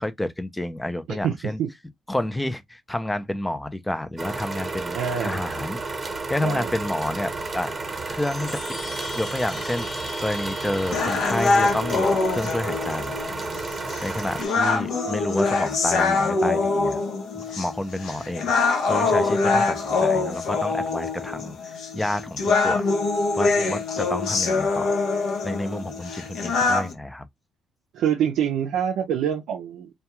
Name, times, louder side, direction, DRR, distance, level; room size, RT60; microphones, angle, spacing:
voice 1, 0.0-1.6 2.1-5.8 6.3-7.8 8.1-8.6 9.1-13.2 14.0-17.0 17.3-22.9 23.4-25.0 25.4-27.3, left 1 dB, 10° left, 0.4 m, -30 dB
voice 2, 1.1-1.7 4.9-5.4 6.4-6.7 23.5-23.7 27.9-29.9, right 9 dB, 85° right, 0.4 m, -26 dB
sound 1, 4.2-14.5, right 3 dB, 30° right, 0.9 m, -32 dB
Chime, 7.9-12.6, left 2 dB, 45° left, 1.0 m, -39 dB
sound 2, 10.9-26.9, left 3 dB, 80° left, 0.7 m, -24 dB
2.3 x 2.2 x 2.9 m
cardioid pair, 90°, 0 cm